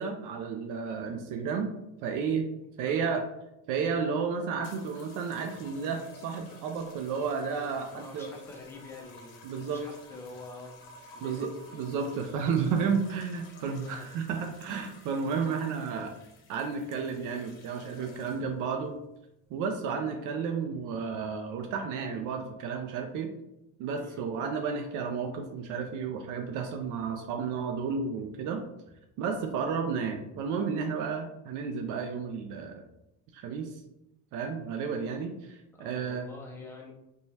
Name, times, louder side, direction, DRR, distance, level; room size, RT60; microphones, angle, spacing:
voice 1, 0.0-1.7 2.0-2.5 2.8-3.2 3.7-8.3 9.4-9.8 11.2-16.1 16.5-19.0 19.5-23.3 23.8-28.6 29.2-32.8 33.3-33.8 34.3-36.2, right 5 dB, 60° right, 4 dB, 0.4 m, -32 dB
voice 2, 2.8-3.2 7.9-10.8 11.1-11.8 12.1-12.2 13.8-14.1 16.1-16.3 23.9-24.2 35.7-36.9, left 2 dB, 5° left, 0 dB, 0.4 m, -47 dB
sound 1, 4.6-18.6 19.5-19.9, left 2 dB, 75° left, 0.7 m, -52 dB
3.1 x 2.3 x 2.7 m, 0.88 s
cardioid pair, 125°, 35 cm